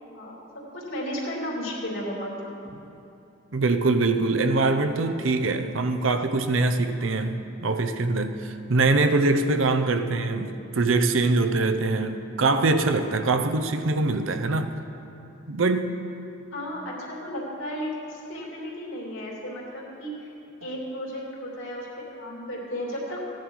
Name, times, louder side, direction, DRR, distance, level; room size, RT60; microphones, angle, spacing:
voice 1, 0.1-2.3 16.5-20.3 20.6-23.2, equal, 70° left, 3.0 m, -34 dB
voice 2, 3.5-14.7 15.5-16.0 20.6-20.7, right 3 dB, 70° right, 0.7 m, -23 dB
15.5 x 10.5 x 4.7 m
head